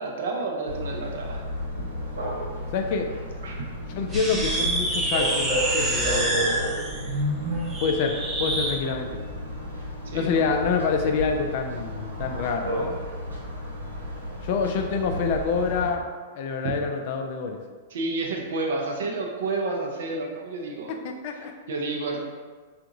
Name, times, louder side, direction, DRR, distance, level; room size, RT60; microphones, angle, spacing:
voice 1, 0.0-1.4 3.4-3.5 10.1-10.4 16.6-16.7 17.9-20.9 21.7-22.2, right 3 dB, 55° right, 0 dB, 0.6 m, -30 dB
sound 1, 0.7-15.9, equal, 75° right, 1.0 m, -33 dB
voice 2, 2.7-3.1 3.9-6.6 7.8-9.2 10.1-13.0 14.4-16.0 16.3-17.6 20.9-21.5, left 5 dB, 45° left, 4 dB, 0.4 m, -27 dB
sound 2, 4.1-8.8, right 1 dB, 20° right, 0.6 m, -27 dB
4.6 x 2.5 x 2.6 m, 1.5 s
figure-of-eight pair, 100°, 0 cm